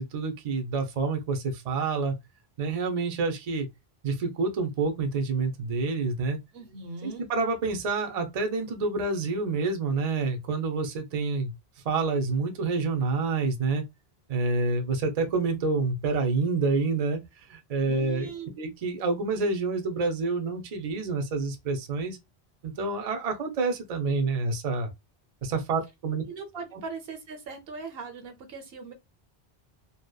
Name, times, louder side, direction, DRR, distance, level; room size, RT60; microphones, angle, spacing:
voice 1, 0.0-2.2 2.6-3.7 4.0-6.4 7.0-11.5 11.8-13.8 14.3-18.3 18.6-22.2 22.6-24.9 25.4-26.2, right 4 dB, 45° right, 0.5 m, -28 dB
voice 2, 6.5-7.3 17.9-18.5 26.3-28.9, right 4 dB, 70° right, 0.8 m, -40 dB
2.7 x 2.1 x 2.2 m
omnidirectional pair, 1.1 m